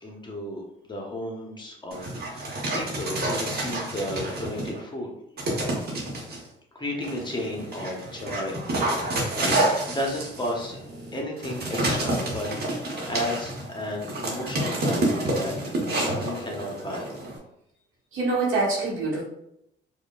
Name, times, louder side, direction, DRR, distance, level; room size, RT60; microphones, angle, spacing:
voice 1, 0.0-5.1 6.7-9.6 9.9-10.8 11.1-12.5 12.8-17.1, left 1 dB, 20° left, 0 dB, 1.0 m, -34 dB
Dog, 1.9-4.8 5.4-6.4 7.0-17.4, right 1 dB, 55° right, 1.2 m, -29 dB
voice 2, 18.1-19.2, right 3 dB, 80° right, -4 dB, 1.4 m, -25 dB
4.8 x 2.6 x 2.4 m, 0.77 s
cardioid pair, 90°, 20 cm